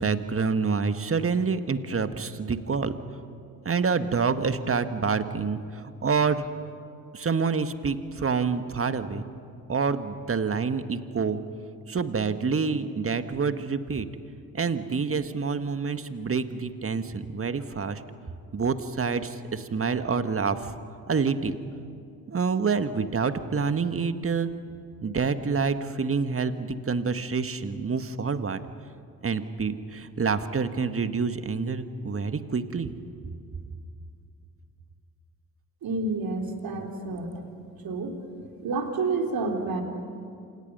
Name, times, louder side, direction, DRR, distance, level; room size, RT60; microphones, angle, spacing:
voice 1, 0.0-3.0 3.6-6.4 7.1-9.2 9.7-11.4 11.9-14.1 14.5-18.0 18.5-20.7 21.1-21.6 22.3-24.5 25.0-28.6 29.2-32.9, right 5 dB, 30° right, 10 dB, 1.7 m, -27 dB
voice 2, 35.8-37.3 37.8-38.2 38.6-39.8, right 3 dB, 55° right, 2 dB, 3.5 m, -29 dB
29.5 x 27.0 x 5.6 m, 2.4 s
hypercardioid pair, 40°, 42 cm